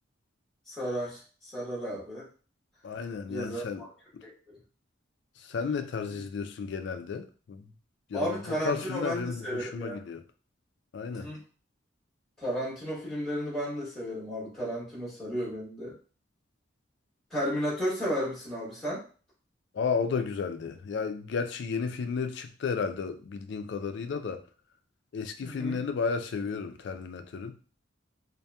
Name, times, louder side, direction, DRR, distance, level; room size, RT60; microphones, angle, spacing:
voice 1, 0.7-2.3 3.3-3.9 4.2-4.6 6.1-6.2 8.1-10.0 11.1-11.4 12.4-16.0 17.3-19.0 25.4-25.8, equal, ahead, 1.1 m, -33 dB
voice 2, 2.8-3.8 5.5-7.6 8.1-8.4 8.6-10.2 10.9-11.3 19.7-24.4 25.1-27.6, left 5 dB, 60° left, 0.3 m, -33 dB
2.7 x 2.5 x 2.2 m
head